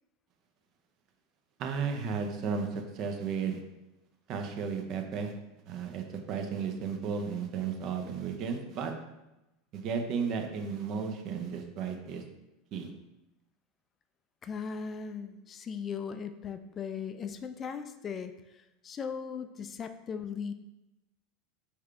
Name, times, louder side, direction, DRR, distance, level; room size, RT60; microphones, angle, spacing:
voice 1, 1.6-3.6 4.3-5.3 5.7-8.9 9.7-12.2 12.7-12.9, right 6 dB, 45° right, 5 dB, 0.7 m, -34 dB
voice 2, 14.4-20.5, left 6 dB, 30° left, 9 dB, 0.3 m, -38 dB
4.6 x 3.5 x 3.3 m, 0.95 s
figure-of-eight pair, 85°, 0 cm